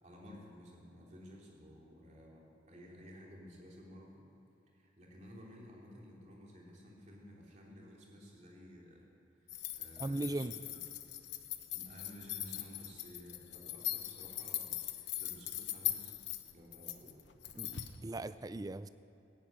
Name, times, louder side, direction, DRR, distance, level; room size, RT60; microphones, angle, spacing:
voice 1, 0.0-4.3 4.7-9.1 9.4-10.5 11.7-16.1 16.5-17.2, equal, 40° right, -2 dB, 2.9 m, -54 dB
sound 1, 9.5-18.0, left 13 dB, 70° left, 0.9 m, -41 dB
voice 2, 10.0-10.5 17.5-18.9, right 2 dB, 20° right, 14 dB, 0.3 m, -38 dB
15.0 x 11.0 x 8.7 m, 2.9 s
head